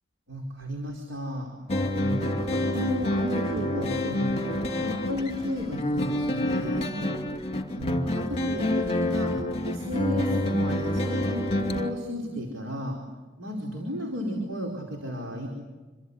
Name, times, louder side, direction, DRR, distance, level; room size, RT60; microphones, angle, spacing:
voice 1, 0.3-1.5 2.0-7.0 7.8-9.3 9.6-13.0 13.4-15.5, left 1 dB, 65° right, 1 dB, 4.7 m, -33 dB
sound 1, 1.7-11.9, left 1 dB, 30° left, 2.7 m, -28 dB
28.0 x 24.0 x 8.3 m, 1.3 s
head